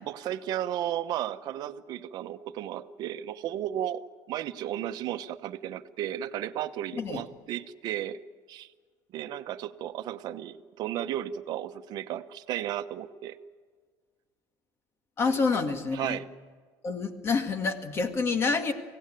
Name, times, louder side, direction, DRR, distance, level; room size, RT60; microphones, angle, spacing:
voice 1, 0.1-4.0 4.3-8.2 8.5-8.7 9.1-13.4 15.3-16.3, right 11 dB, 60° right, 10 dB, 1.0 m, -34 dB
voice 2, 15.2-16.2 16.8-18.7, left 4 dB, 30° left, 7 dB, 2.0 m, -27 dB
24.5 x 17.0 x 9.2 m, 1.5 s
cardioid pair, 140°, 8 cm